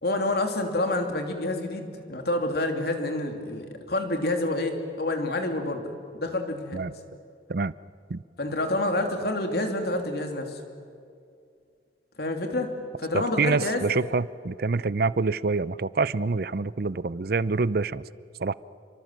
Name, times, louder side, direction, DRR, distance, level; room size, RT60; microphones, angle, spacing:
voice 1, 0.0-6.8 8.4-10.6 12.2-13.9, left 2 dB, 55° left, 4 dB, 2.9 m, -28 dB
voice 2, 13.1-18.0 18.4-18.5, right 4 dB, 55° right, 18 dB, 0.6 m, -26 dB
29.0 x 24.5 x 7.6 m, 2.3 s
head